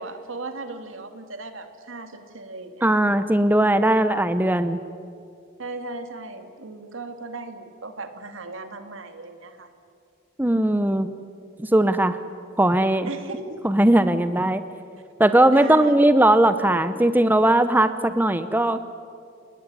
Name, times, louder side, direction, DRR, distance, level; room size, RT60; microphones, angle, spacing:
voice 1, 0.0-3.0 5.6-9.7 10.6-11.1 13.0-13.6 15.5-15.9, right 2 dB, 75° right, 7 dB, 2.5 m, -37 dB
voice 2, 2.8-4.8 10.4-11.1 11.6-12.2 12.6-13.1 13.6-14.6 15.2-18.8, right 1 dB, 10° right, 11 dB, 0.7 m, -19 dB
29.0 x 19.5 x 9.9 m, 2.4 s
head